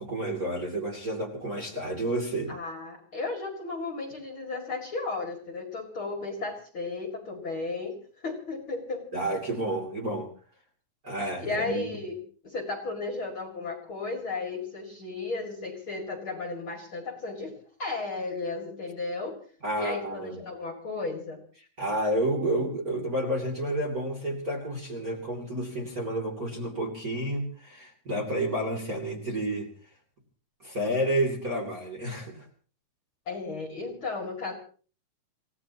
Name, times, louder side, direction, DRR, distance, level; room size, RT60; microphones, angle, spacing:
voice 1, 0.0-2.5 9.1-10.3 11.0-11.9 19.6-20.4 21.8-29.7 30.6-32.4, right 1 dB, 25° right, 0 dB, 2.8 m, -30 dB
voice 2, 2.5-8.0 8.2-9.0 11.4-12.2 12.4-19.4 19.8-21.4 33.3-34.5, left 3 dB, 35° left, 3 dB, 2.6 m, -34 dB
28.0 x 16.5 x 3.0 m, 0.41 s
omnidirectional pair, 4.5 m